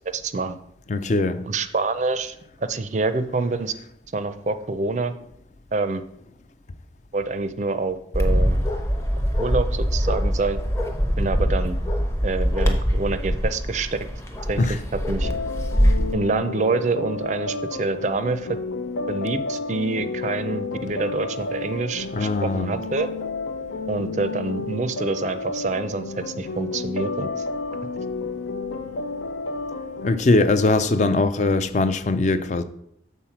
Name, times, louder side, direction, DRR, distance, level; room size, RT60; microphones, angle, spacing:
voice 1, 0.1-0.6 1.4-2.4 2.7-3.7 4.1-5.1 5.7-6.0 7.1-8.6 9.4-10.6 11.2-11.8 12.2-14.1 14.5-15.3 16.1-18.6 19.1-23.1 23.9-27.4, right 3 dB, 40° right, 0.4 m, -26 dB
voice 2, 0.9-1.4 14.6-14.8 21.9-22.7 30.0-32.6, left 2 dB, 40° left, 0.4 m, -21 dB
Bark, 8.1-16.1, equal, 15° left, 0.7 m, -23 dB
sound 1, 15.2-30.2, left 3 dB, 90° left, 0.6 m, -31 dB
7.2 x 4.1 x 5.8 m
head